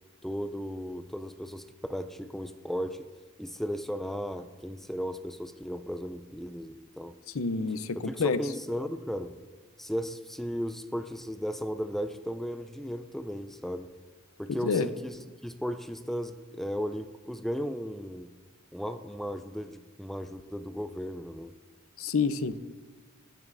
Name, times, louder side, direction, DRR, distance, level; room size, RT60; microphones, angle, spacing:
voice 1, 0.2-3.1 3.4-7.1 8.1-9.4 9.8-13.9 14.4-15.2 15.4-18.3 18.7-21.5, equal, ahead, 10 dB, 0.3 m, -35 dB
voice 2, 7.3-8.4 14.5-14.9 22.0-22.6, left 4 dB, 75° left, 13 dB, 0.6 m, -28 dB
15.5 x 12.0 x 2.6 m, 1.5 s
head